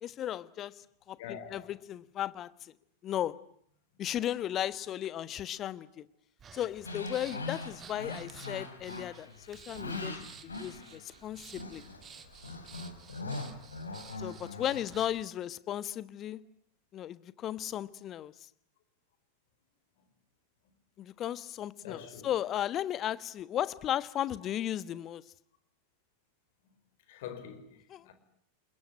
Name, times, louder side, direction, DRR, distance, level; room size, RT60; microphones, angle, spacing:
voice 1, 0.0-2.5 3.0-3.3 4.0-6.0 6.5-11.8 14.2-16.4 16.9-18.3 21.0-25.2 27.9-28.0, left 11 dB, 30° left, 1.3 m, -35 dB
voice 2, 1.2-1.7 21.8-22.3 27.1-28.1, left 8 dB, 55° left, 5.0 m, -45 dB
Breathing, 6.4-15.3, right 7 dB, 25° right, 2.4 m, -53 dB
sound 1, 6.8-11.3 11.5-15.2, left 3 dB, 75° left, 4.4 m, -42 dB
28.5 x 21.5 x 9.9 m
figure-of-eight pair, 90°, 0 cm